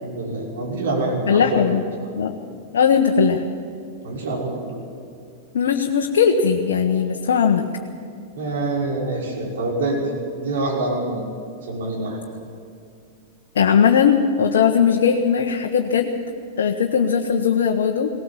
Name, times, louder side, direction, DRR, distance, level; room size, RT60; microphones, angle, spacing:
voice 1, 0.0-1.6 2.0-2.1 4.0-4.7 8.3-10.0 10.4-11.2 11.6-12.2, right 2 dB, 70° right, -1 dB, 5.9 m, -25 dB
voice 2, 1.3-1.8 2.1-2.3 2.7-3.4 5.5-7.7 13.5-16.1 16.6-18.1, left 7 dB, 75° left, 2 dB, 1.3 m, -18 dB
19.0 x 18.5 x 7.3 m, 2.4 s
hypercardioid pair, 105°, 0 cm